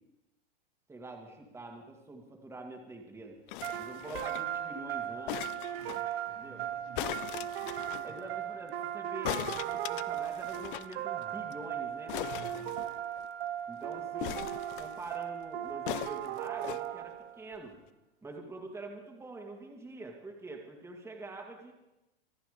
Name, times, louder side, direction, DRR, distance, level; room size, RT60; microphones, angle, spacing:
voice 1, 0.9-3.4 3.8-5.5 6.3-6.7 8.0-12.2 13.7-14.4 14.8-17.7 18.2-21.7, right 2 dB, 10° right, 1 dB, 2.1 m, -45 dB
sound 1, 3.5-4.6 5.3-6.0 6.9-8.1 9.2-10.9 11.2-11.3 11.5-11.7 12.1-13.3 14.2-15.1 15.9-16.8 17.6-17.7, left 17 dB, 55° left, 0.6 m, -39 dB
sound 2, 3.6-17.5, right 11 dB, 75° right, 1.0 m, -37 dB
voice 2, 5.7-7.5 8.1-8.2 12.3-12.8, right 7 dB, 50° right, 3 dB, 2.5 m, -53 dB
25.0 x 8.9 x 5.1 m, 0.95 s
supercardioid pair, 135°, 31 cm